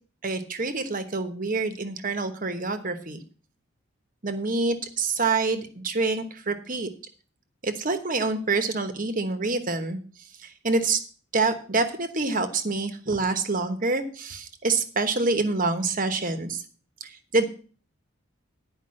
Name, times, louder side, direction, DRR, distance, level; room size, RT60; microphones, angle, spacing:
voice 1, 0.2-3.2 4.2-6.9 7.6-10.0 10.4-11.0 11.3-16.6 17.0-17.4, right 3 dB, 40° right, 9 dB, 1.1 m, -26 dB
10.0 x 5.2 x 7.6 m, 0.42 s
head